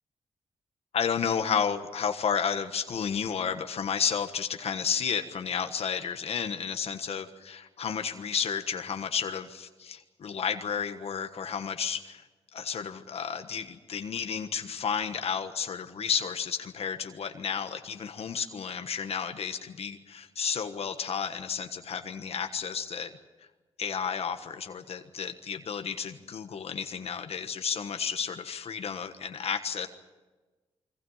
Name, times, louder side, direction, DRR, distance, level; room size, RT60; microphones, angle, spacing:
voice 1, 0.9-12.2 12.5-23.1 23.8-29.9, left 7 dB, 70° left, 7 dB, 1.4 m, -32 dB
29.0 x 22.5 x 5.7 m, 1.2 s
cardioid pair, 95°, 11 cm